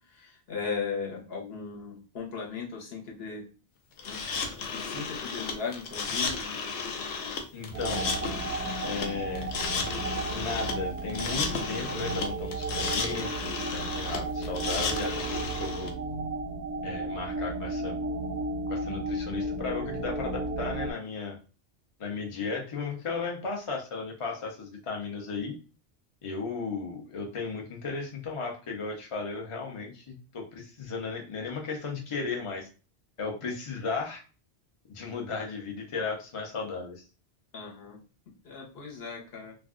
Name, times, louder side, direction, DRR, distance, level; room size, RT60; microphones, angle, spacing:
voice 1, 0.1-3.5 4.0-4.2 4.7-6.4 37.5-38.0 38.4-39.6, left 5 dB, 65° left, -1 dB, 1.1 m, -37 dB
sound 1, 4.0-15.9, left 5 dB, 85° left, 0.9 m, -33 dB
voice 2, 7.5-8.1 8.8-9.5 10.3-15.9 16.8-17.9 18.7-21.4 22.0-25.5 26.2-32.7 33.2-34.2 34.9-37.0, left 4 dB, 35° left, 1 dB, 0.6 m, -35 dB
sound 2, 7.7-20.9, right 2 dB, 60° right, 0.5 m, -34 dB
2.5 x 2.2 x 3.5 m, 0.35 s
omnidirectional pair, 1.1 m